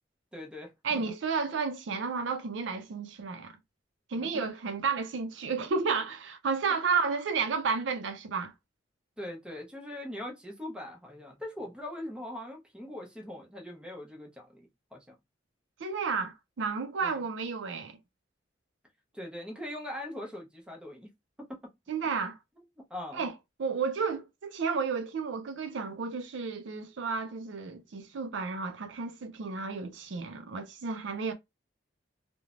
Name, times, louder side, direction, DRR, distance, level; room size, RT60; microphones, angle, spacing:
voice 1, 0.3-1.1 4.2-4.4 6.7-6.8 9.2-15.1 17.0-17.2 19.1-21.1 21.5-21.6 22.6-22.7 22.9-23.3, left 1 dB, 5° right, 0.7 m, -41 dB
voice 2, 0.8-3.6 4.1-8.5 15.8-18.0 21.9-22.4 23.1-23.3 23.6-31.3, right 5 dB, 65° right, 0.4 m, -32 dB
3.1 x 2.1 x 2.4 m
head